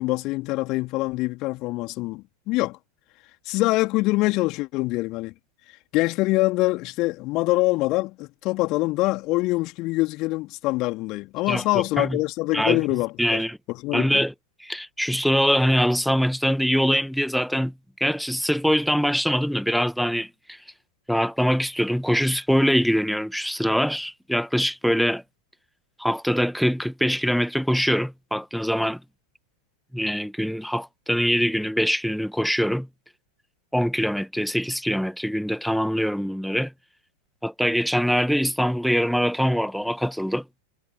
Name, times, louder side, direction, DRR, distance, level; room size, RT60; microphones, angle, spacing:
voice 1, 0.0-2.8 3.4-5.3 5.9-14.2, left 21 dB, 40° left, 3.5 m, -24 dB
voice 2, 11.5-12.2 12.5-12.8 13.2-13.6 13.9-14.3 14.6-17.7 18.0-20.6 21.1-25.2 26.0-29.0 29.9-32.9 33.7-36.7 37.4-40.4, equal, ahead, 1.9 m, -23 dB
figure-of-eight pair, 90°, 0 cm